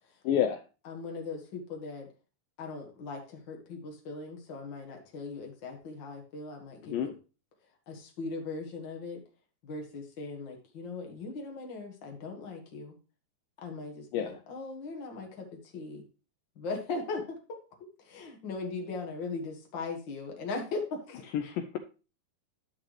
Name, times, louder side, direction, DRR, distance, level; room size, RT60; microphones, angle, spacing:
voice 1, 0.2-0.6 6.8-7.1 14.1-14.4 21.3-21.8, left 9 dB, 85° left, 6 dB, 2.0 m, -29 dB
voice 2, 0.8-2.1 2.6-7.1 7.9-9.2 9.6-12.9 13.6-16.0 16.5-17.6 18.0-21.2, left 3 dB, 60° left, 2 dB, 1.2 m, -39 dB
11.0 x 6.4 x 3.2 m, 0.32 s
omnidirectional pair, 4.5 m